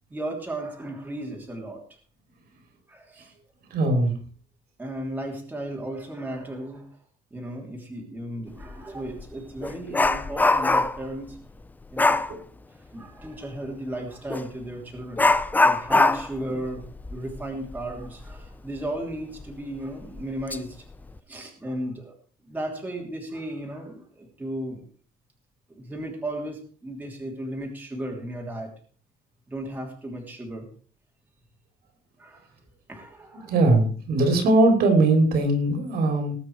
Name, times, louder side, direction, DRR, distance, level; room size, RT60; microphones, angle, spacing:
voice 1, 0.1-1.8 2.9-3.3 4.8-6.9 7.3-11.4 11.9-12.2 12.9-20.8 21.3-22.1 22.4-24.8 25.7-28.7 29.5-30.7 32.2-32.5 32.9-33.7, right 1 dB, 10° right, 0 dB, 3.1 m, -35 dB
voice 2, 3.7-4.1 33.5-36.4, right 2 dB, 70° right, 5 dB, 3.9 m, -20 dB
Dog, 8.6-8.8 9.2-11.1 12.0-12.3 14.3-14.5 15.2-18.5 18.8-18.9 19.4-19.5 20.2-20.6 20.9-21.2, left 2 dB, 10° left, 0.5 m, -22 dB
19.0 x 8.9 x 4.8 m, 0.44 s
cardioid pair, 175°, 17 cm